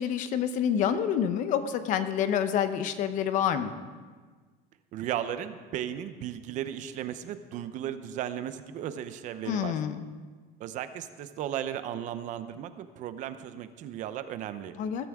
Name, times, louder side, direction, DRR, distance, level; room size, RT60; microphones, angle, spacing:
voice 1, 0.0-3.7 9.5-10.0 14.8-15.1, left 8 dB, 45° left, 10 dB, 0.8 m, -27 dB
voice 2, 4.9-9.7 10.6-14.7, right 10 dB, 45° right, 11 dB, 0.7 m, -35 dB
20.5 x 12.5 x 3.6 m, 1.5 s
cardioid pair, 170°, 18 cm